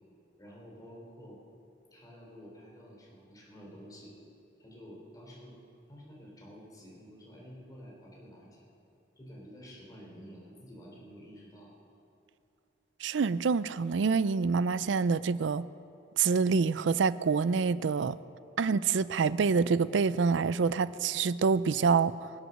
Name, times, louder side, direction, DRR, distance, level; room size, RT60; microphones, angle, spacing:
voice 1, 0.4-1.4 1.9-4.1 4.6-5.6 5.9-8.6 9.2-11.7, equal, 20° left, 3.6 m, -50 dB
voice 2, 13.0-15.7 16.2-18.2 18.6-22.3, right 5 dB, 75° right, 0.4 m, -26 dB
23.5 x 8.1 x 6.5 m
head